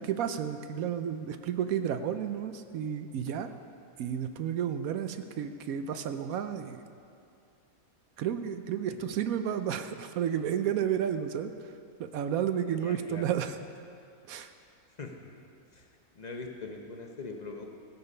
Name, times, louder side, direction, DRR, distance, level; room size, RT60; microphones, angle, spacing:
voice 1, 0.0-3.5 4.0-6.8 8.2-11.7 12.0-13.6 14.3-14.5, right 9 dB, 75° right, 9 dB, 1.0 m, -32 dB
voice 2, 12.8-13.3 15.0-15.1 15.7-15.9 16.1-17.6, left 3 dB, 35° left, 2 dB, 0.9 m, -41 dB
16.0 x 6.9 x 5.5 m, 2.5 s
omnidirectional pair, 1.6 m